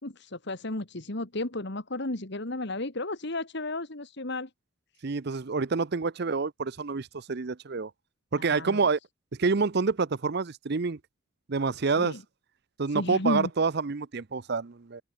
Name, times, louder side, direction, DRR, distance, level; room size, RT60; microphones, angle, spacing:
voice 1, 0.0-4.5 8.4-8.9 12.0-12.2 12.9-13.5, left 2 dB, 55° left, 2.0 m, -33 dB
voice 2, 5.0-7.9 8.3-9.0 9.4-11.0 11.5-12.2 12.8-15.0, right 4 dB, 50° right, 0.6 m, -27 dB
open air
head